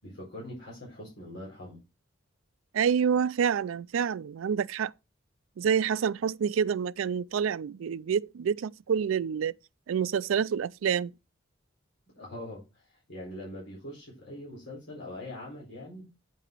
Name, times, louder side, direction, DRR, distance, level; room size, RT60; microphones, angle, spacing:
voice 1, 0.0-1.8 12.2-16.0, left 1 dB, 65° left, 4.5 m, -42 dB
voice 2, 2.7-4.9 5.6-9.5 9.9-11.1, right 7 dB, 80° right, 0.4 m, -27 dB
9.1 x 5.8 x 4.6 m
head